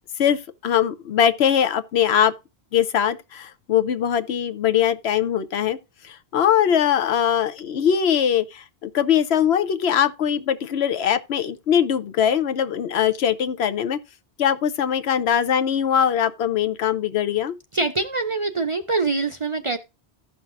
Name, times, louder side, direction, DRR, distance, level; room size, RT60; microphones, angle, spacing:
voice 1, 0.2-2.3 2.7-5.8 6.0-14.0 14.4-17.6, left 9 dB, 75° left, 0.9 m, -21 dB
voice 2, 17.7-19.8, right 3 dB, 40° right, 0.5 m, -24 dB
15.5 x 5.8 x 2.5 m
omnidirectional pair, 1.1 m